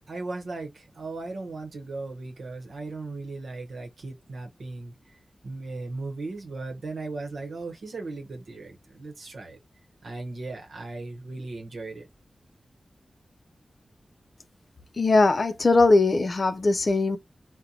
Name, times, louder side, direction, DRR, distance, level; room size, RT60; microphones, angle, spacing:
voice 1, 0.0-4.9 5.4-9.6 10.0-12.1, right 3 dB, 90° right, 0.8 m, -37 dB
voice 2, 15.0-17.2, left 3 dB, 55° left, 0.4 m, -20 dB
3.8 x 2.1 x 2.8 m
wide cardioid pair, 75°, 0 cm